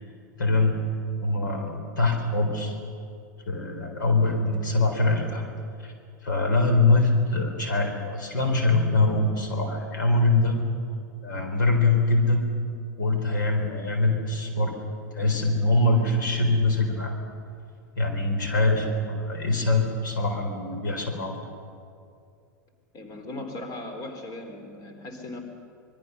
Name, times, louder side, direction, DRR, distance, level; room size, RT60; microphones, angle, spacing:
voice 1, 0.4-0.8 1.2-2.8 3.5-5.4 5.8-5.9 6.2-10.6 11.2-12.5 13.0-14.7 15.1-17.1 18.0-21.4, left 2 dB, 75° left, 3 dB, 4.2 m, -23 dB
voice 2, 22.9-25.4, left 2 dB, 40° left, 6 dB, 3.9 m, -38 dB
26.0 x 22.0 x 6.8 m, 2.4 s
hypercardioid pair, 95°, 10 cm